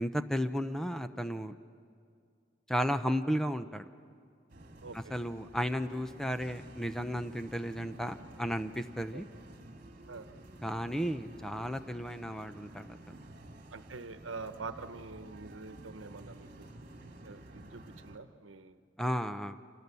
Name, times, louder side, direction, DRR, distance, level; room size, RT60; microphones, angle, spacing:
voice 1, 0.0-1.5 2.7-3.9 4.9-9.3 10.6-13.1 19.0-19.6, equal, ahead, 9 dB, 0.7 m, -34 dB
sound 1, 4.5-18.2, right 1 dB, 45° right, 2.2 m, -51 dB
voice 2, 4.8-5.2 9.1-9.2 10.1-10.3 13.7-16.7 17.2-18.8, right 4 dB, 85° right, 10 dB, 1.1 m, -45 dB
28.0 x 27.5 x 7.0 m, 2.2 s
head